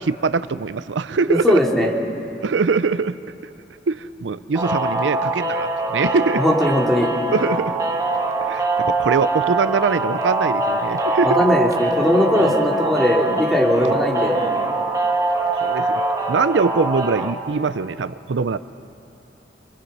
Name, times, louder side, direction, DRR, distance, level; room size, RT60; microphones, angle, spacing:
voice 1, 0.0-1.6 2.4-3.2 3.9-6.5 7.3-7.8 8.4-11.4 12.4-12.5 13.7-14.0 14.6-14.7 15.6-18.6, right 4 dB, 85° right, 14 dB, 0.5 m, -22 dB
voice 2, 1.3-1.9 6.3-7.1 11.2-14.4, equal, ahead, -2 dB, 2.7 m, -19 dB
sound 1, 4.5-17.3, right 2 dB, 20° right, 1.6 m, -23 dB
25.5 x 25.0 x 5.5 m, 2.7 s
head